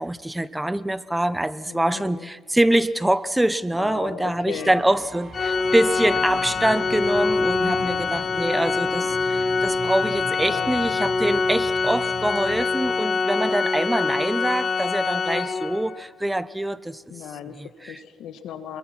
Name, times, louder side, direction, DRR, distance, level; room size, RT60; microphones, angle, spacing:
voice 1, 0.0-17.0 17.6-18.0, right 1 dB, 10° right, 0.9 m, -24 dB
voice 2, 1.6-2.3 3.8-4.8 7.6-8.0 10.4-10.7 17.1-18.8, left 9 dB, 80° left, 1.5 m, -36 dB
sound 1, 3.8-12.7, right 3 dB, 40° right, 4.0 m, -40 dB
Organ, 5.3-16.0, left 4 dB, 45° left, 1.0 m, -24 dB
28.5 x 22.0 x 6.1 m
cardioid pair, 90°, 0 cm